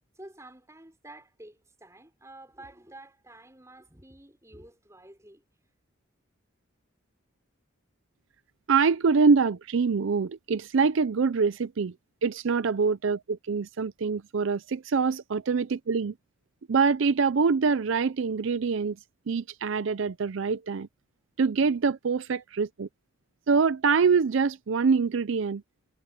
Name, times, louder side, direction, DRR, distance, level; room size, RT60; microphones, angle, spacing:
voice 1, 0.1-5.4, right 1 dB, 15° right, 5.1 m, -50 dB
voice 2, 8.7-11.9 12.2-16.1 16.7-19.0 19.3-20.9 21.4-22.9 23.5-25.6, right 5 dB, 70° right, 0.5 m, -25 dB
head